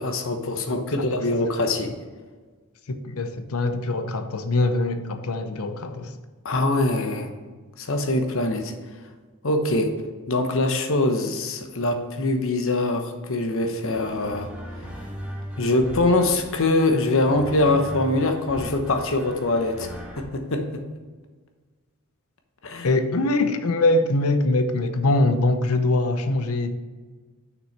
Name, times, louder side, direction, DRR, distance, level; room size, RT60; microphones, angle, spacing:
voice 1, 0.0-1.9 6.4-7.3 7.8-9.1 9.4-10.0 10.3-14.5 14.8-14.9 15.6-20.8 22.6-22.9, left 2 dB, 65° left, 5 dB, 1.0 m, -23 dB
voice 2, 2.9-6.1 22.8-26.7, left 2 dB, 80° left, 8 dB, 0.7 m, -23 dB
sound 1, 13.9-20.2, equal, 5° right, 1.2 m, -39 dB
6.3 x 6.2 x 4.2 m, 1.4 s
head